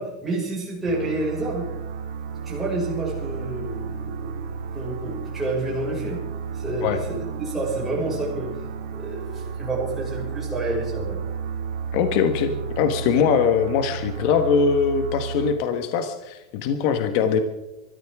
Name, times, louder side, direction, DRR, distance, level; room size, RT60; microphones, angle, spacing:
voice 1, 0.0-1.7 2.4-6.2 6.5-7.1 7.4-8.5 8.9-11.2, right 2 dB, 5° right, -6 dB, 5.6 m, -29 dB
sound 1, 0.9-15.6, right 6 dB, 85° right, 2.2 m, -32 dB
voice 2, 11.9-17.4, left 6 dB, 50° left, 7 dB, 1.3 m, -22 dB
24.5 x 14.5 x 3.6 m, 0.97 s
supercardioid pair, 145°, 3 cm